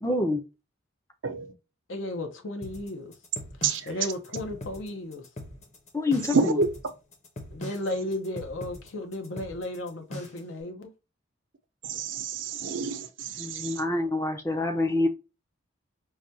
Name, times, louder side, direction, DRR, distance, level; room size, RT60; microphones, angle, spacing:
voice 1, 0.0-0.4 5.9-6.6 13.4-15.1, left 2 dB, 15° left, 0.5 m, -26 dB
voice 2, 1.9-3.1 3.8-5.3 7.5-10.9, left 1 dB, 70° left, 0.7 m, -34 dB
sound 1, 2.6-10.5, left 1 dB, 35° left, 0.9 m, -41 dB
voice 3, 6.3-6.7 11.9-13.7, right 4 dB, 65° right, 0.6 m, -28 dB
4.8 x 2.2 x 2.7 m
head